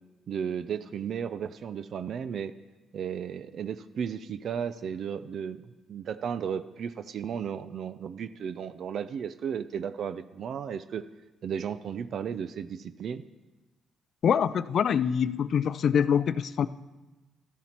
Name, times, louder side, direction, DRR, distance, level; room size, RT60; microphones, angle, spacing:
voice 1, 0.3-2.5 2.9-11.0 11.4-13.2, right 7 dB, 60° right, 13 dB, 0.4 m, -34 dB
voice 2, 14.2-16.7, left 8 dB, 60° left, 15 dB, 0.4 m, -25 dB
13.5 x 7.0 x 4.4 m, 1.1 s
cardioid pair, 90°, 0 cm